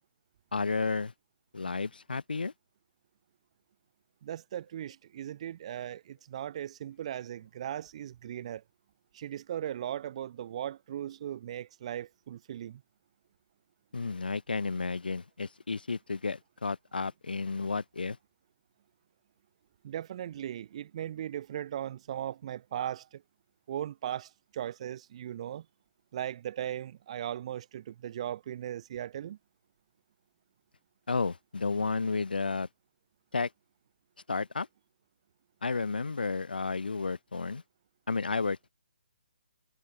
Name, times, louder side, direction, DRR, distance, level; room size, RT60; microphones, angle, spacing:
voice 1, 0.5-1.1 1.5-2.5 13.9-18.2 31.1-32.7 33.3-33.5 34.3-34.7 35.6-37.6 38.1-38.7, left 4 dB, 80° left, 3.7 m, -32 dB
voice 2, 4.2-8.6 9.1-12.8 19.8-23.2 23.7-25.7 26.1-29.4, right 11 dB, 40° right, 3.6 m, -38 dB
figure-of-eight pair, 150°, 5 cm